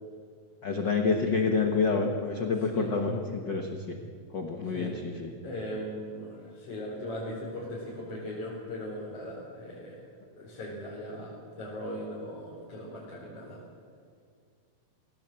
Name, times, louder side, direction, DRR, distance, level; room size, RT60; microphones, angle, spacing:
voice 1, 0.6-4.0 4.3-5.3, left 4 dB, 60° left, 3 dB, 1.1 m, -28 dB
voice 2, 5.4-10.1 10.4-13.6, equal, 45° left, -6 dB, 5.0 m, -39 dB
21.5 x 17.5 x 7.7 m, 2.1 s
omnidirectional pair, 4.0 m